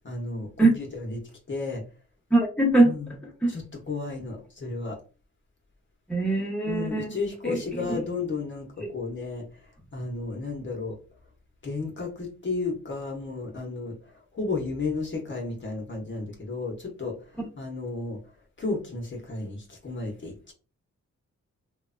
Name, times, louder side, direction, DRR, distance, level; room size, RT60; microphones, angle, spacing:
voice 1, 0.0-1.2 1.5-1.8 2.8-3.1 3.5-5.0 6.7-11.0 11.6-18.2 18.6-20.5, left 3 dB, 40° left, 0.7 m, -33 dB
voice 2, 2.3-2.9 3.4-3.5 6.1-7.2 7.4-7.8 8.8-8.9, right 2 dB, 5° left, 0.8 m, -22 dB
2.9 x 2.1 x 2.4 m
wide cardioid pair, 100°, 30 cm